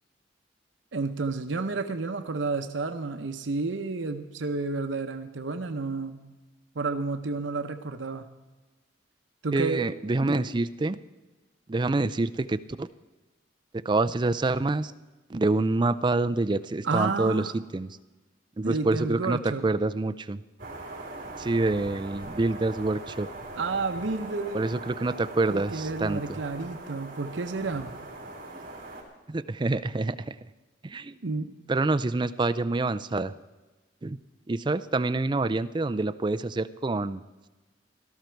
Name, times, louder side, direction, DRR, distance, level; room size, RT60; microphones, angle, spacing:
voice 1, 0.9-6.3 6.7-8.3 9.4-9.8 10.2-10.4 16.8-17.5 18.6-19.7 23.6-24.7 25.5-27.9 31.2-31.5, right 3 dB, 85° right, 7 dB, 0.8 m, -31 dB
voice 2, 9.5-11.0 11.7-12.9 13.7-14.9 15.3-17.9 18.6-20.4 21.4-23.3 24.5-26.4 29.3-30.4 30.8-31.2 31.7-33.3 34.0-34.2 34.5-37.2, right 2 dB, 25° right, 12 dB, 0.4 m, -27 dB
sound 1, 20.6-29.0, right 2 dB, 50° right, 3.5 m, -41 dB
17.5 x 13.5 x 4.6 m, 1.2 s
head